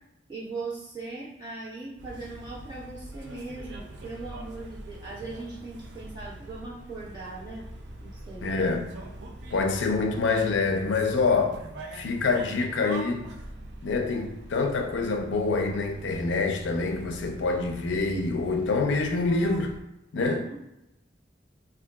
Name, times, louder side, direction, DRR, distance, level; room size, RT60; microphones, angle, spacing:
voice 1, 0.3-7.7 8.0-8.5 20.2-20.6, right 3 dB, 25° right, 1.2 m, -39 dB
sound 1, 2.0-19.8, right 1 dB, 65° right, 0.4 m, -43 dB
voice 2, 8.4-8.8 9.5-11.6 11.9-13.2 13.8-19.7 20.1-20.4, left 3 dB, 85° left, 0.4 m, -26 dB
3.6 x 2.4 x 2.2 m
head